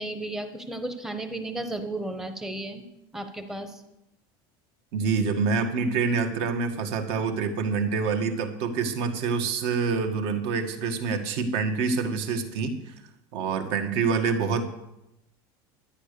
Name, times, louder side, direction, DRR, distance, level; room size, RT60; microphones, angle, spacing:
voice 1, 0.0-2.8 3.1-3.8, right 2 dB, 5° right, 7 dB, 1.1 m, -34 dB
voice 2, 4.9-12.9 13.3-14.8, right 5 dB, 50° right, 6 dB, 1.8 m, -26 dB
11.5 x 10.5 x 6.8 m, 0.86 s
cardioid pair, 170°, 12 cm